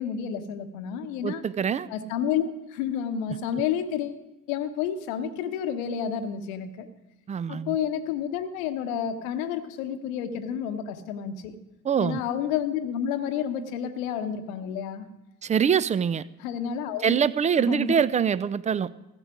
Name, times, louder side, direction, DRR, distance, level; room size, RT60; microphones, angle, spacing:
voice 1, 0.0-1.4 1.9-4.2 4.5-6.9 7.5-11.6 12.0-15.1 16.4-17.2 17.6-18.0, left 8 dB, 70° left, 10 dB, 0.9 m, -30 dB
voice 2, 1.2-1.9 3.3-3.4 7.3-7.8 11.8-12.2 15.4-16.2 17.0-18.9, right 7 dB, 20° right, 18 dB, 0.3 m, -24 dB
15.5 x 9.0 x 5.0 m, 0.98 s
figure-of-eight pair, 50°, 42 cm